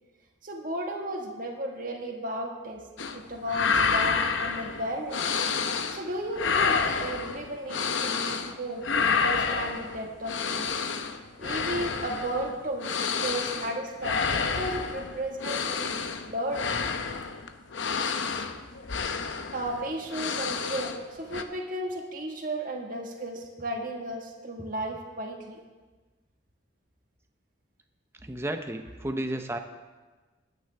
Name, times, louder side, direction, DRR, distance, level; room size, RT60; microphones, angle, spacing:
voice 1, 0.4-2.8 3.1-5.3 5.9-10.7 11.4-12.9 13.2-16.8 19.5-25.6, right 1 dB, 45° right, 1 dB, 1.7 m, -34 dB
sound 1, 3.0-3.2 3.5-6.1 6.3-8.6 8.8-21.0 21.3-21.4, left 5 dB, 70° left, 0.7 m, -29 dB
voice 2, 28.2-29.6, right 1 dB, 15° right, 6 dB, 0.7 m, -32 dB
19.5 x 9.4 x 3.5 m, 1.3 s
head